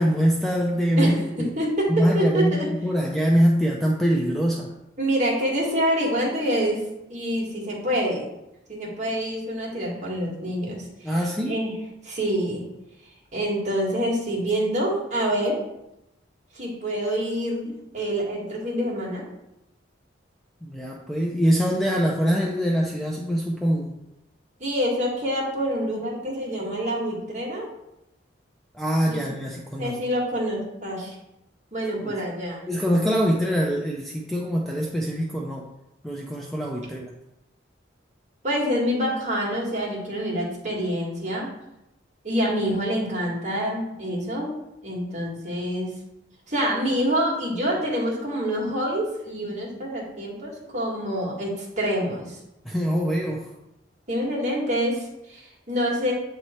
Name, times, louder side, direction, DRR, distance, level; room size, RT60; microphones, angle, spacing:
voice 1, 0.0-1.5 2.0-4.7 11.0-11.6 20.6-24.0 28.7-30.0 32.0-32.2 32.7-35.7 36.0-37.1 52.6-53.5, equal, ahead, -1 dB, 0.4 m, -23 dB
voice 2, 1.0-2.7 5.0-6.8 7.1-8.2 8.7-11.1 11.5-11.7 12.0-12.7 13.3-15.6 16.5-19.3 24.6-27.7 29.0-29.3 29.8-31.1 31.7-32.6 38.4-41.5 42.2-44.5 44.8-45.9 46.5-52.4 54.1-56.1, equal, 40° right, -4 dB, 1.6 m, -26 dB
7.7 x 3.1 x 4.2 m, 0.88 s
head